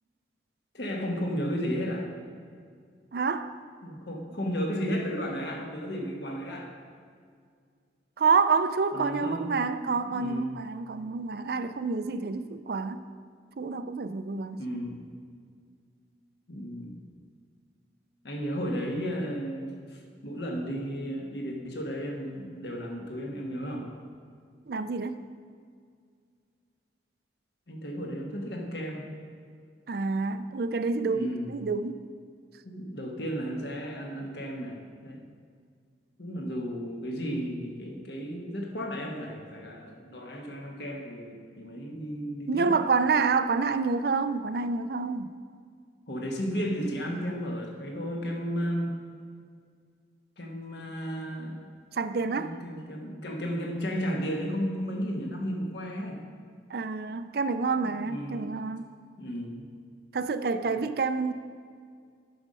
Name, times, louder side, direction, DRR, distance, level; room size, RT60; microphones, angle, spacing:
voice 1, 0.7-2.1 3.8-6.7 8.9-9.5 10.0-10.6 14.6-15.0 16.5-17.0 18.2-23.9 27.7-29.0 31.0-31.6 32.6-35.2 36.2-42.7 46.1-48.9 50.4-51.6 52.4-56.2 57.8-58.5 59.2-59.7 60.6-60.8, equal, 65° left, 1 dB, 1.4 m, -34 dB
voice 2, 3.1-3.5 8.2-13.0 13.6-14.6 24.7-25.2 29.9-32.0 42.5-45.3 51.9-52.5 56.7-58.9 60.1-61.3, right 4 dB, 55° right, 11 dB, 0.4 m, -28 dB
9.4 x 6.4 x 5.4 m, 2.1 s
head